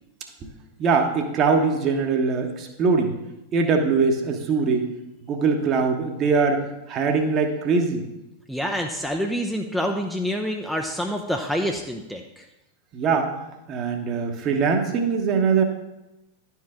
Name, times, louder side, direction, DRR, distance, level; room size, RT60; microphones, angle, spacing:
voice 1, 0.8-3.1 3.5-4.8 5.2-8.0 12.9-13.3 13.7-15.6, right 4 dB, 30° right, 4 dB, 1.1 m, -22 dB
voice 2, 8.5-12.5, equal, ahead, 2 dB, 0.5 m, -27 dB
11.0 x 4.6 x 3.6 m, 0.94 s
figure-of-eight pair, 90°, 0 cm